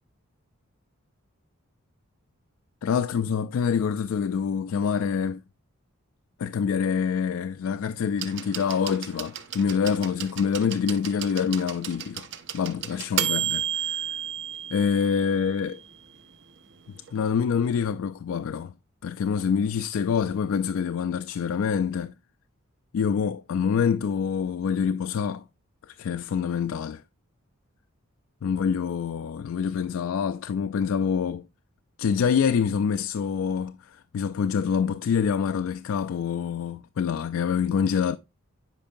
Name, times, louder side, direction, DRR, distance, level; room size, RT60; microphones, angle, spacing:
voice 1, 2.8-5.4 6.4-12.3 12.5-14.1 14.7-15.8 17.1-18.7 19.0-22.1 22.9-25.4 25.9-27.0 28.4-31.4 32.0-38.2, left 6 dB, 70° left, 0.3 m, -26 dB
sound 1, 8.2-16.0 17.1-17.2, right 10 dB, 55° right, 0.6 m, -33 dB
8.7 x 5.4 x 2.5 m
head